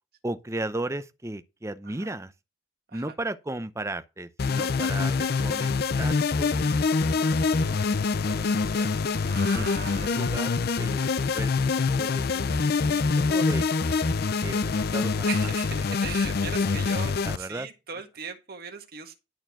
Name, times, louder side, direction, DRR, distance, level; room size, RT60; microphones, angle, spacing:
voice 1, 0.2-2.3 2.9-5.7 6.0-7.4 7.7-8.9 9.5-11.5 12.0-12.2 12.6-13.6 14.4-15.5 16.6-17.0 17.2-17.7, right 1 dB, 15° right, 0.6 m, -36 dB
sound 1, 4.4-17.4, left 4 dB, 55° left, 0.5 m, -25 dB
voice 2, 9.3-10.4 13.6-14.0 15.2-19.1, right 6 dB, 50° right, 1.5 m, -39 dB
11.5 x 4.4 x 5.8 m
head